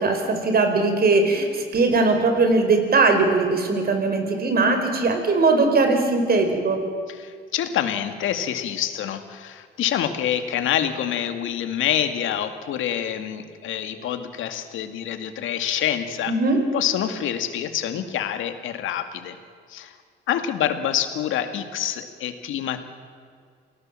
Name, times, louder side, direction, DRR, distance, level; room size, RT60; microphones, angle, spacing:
voice 1, 0.0-6.8 16.3-16.6, right 3 dB, 50° right, 6 dB, 4.9 m, -20 dB
voice 2, 7.1-16.4 16.7-19.4 19.7-20.0 20.3-22.8, left 10 dB, 85° left, 9 dB, 2.0 m, -26 dB
28.5 x 18.5 x 7.6 m, 2.1 s
cardioid pair, 90°, 20 cm